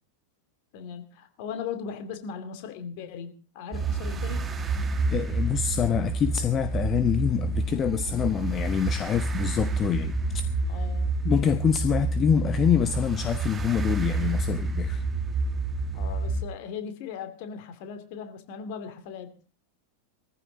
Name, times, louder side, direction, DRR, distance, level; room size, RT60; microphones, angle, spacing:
voice 1, 0.7-4.6 10.7-11.1 15.9-19.4, left 7 dB, 45° left, 2.6 m, -38 dB
sound 1, 3.7-16.4, right 3 dB, 20° right, 1.5 m, -29 dB
voice 2, 5.1-10.4 11.2-15.0, left 8 dB, 25° left, 0.8 m, -26 dB
20.0 x 14.5 x 3.9 m
figure-of-eight pair, 90°, 0 cm